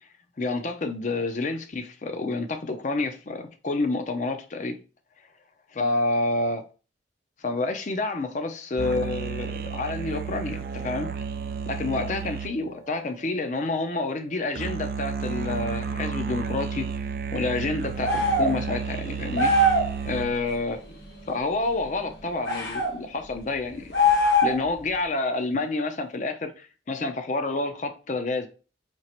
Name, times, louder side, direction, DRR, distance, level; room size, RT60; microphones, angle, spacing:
voice 1, 0.4-4.8 5.7-6.6 7.4-11.1 11.7-16.9 17.3-19.7 20.1-21.0 21.3-24.0 24.4-28.5, left 3 dB, 40° left, 0.5 m, -29 dB
sound 1, 8.8-13.7 14.6-20.6, right 6 dB, 50° right, 0.4 m, -32 dB
sound 2, 18.0-18.5 19.3-19.9 22.4-22.9 23.9-24.7, left 1 dB, 55° left, 1.3 m, -21 dB
4.4 x 2.9 x 3.0 m
head